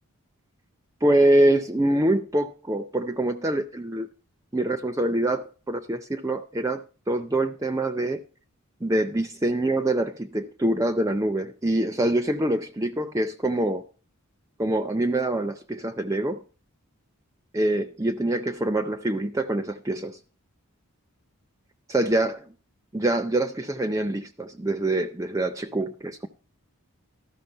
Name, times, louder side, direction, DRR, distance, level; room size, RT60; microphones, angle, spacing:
voice 1, 1.0-4.1 4.5-8.2 8.8-13.8 14.6-16.4 17.5-20.2 21.9-22.5 22.9-26.3, right 1 dB, 15° right, 0.5 m, -25 dB
13.0 x 6.0 x 5.4 m
head